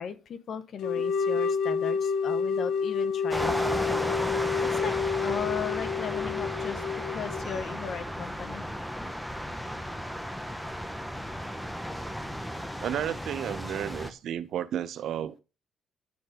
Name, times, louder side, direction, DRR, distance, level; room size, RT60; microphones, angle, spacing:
voice 1, 0.0-3.7 4.3-4.4 4.7-8.6, left 7 dB, 60° left, 1.1 m, -37 dB
sound 1, 0.8-7.6, left 5 dB, 85° left, 1.0 m, -29 dB
sound 2, 3.3-14.1, equal, 5° left, 1.0 m, -34 dB
voice 2, 12.8-15.4, right 10 dB, 75° right, 0.7 m, -32 dB
10.5 x 4.2 x 5.2 m
cardioid pair, 90°, 0 cm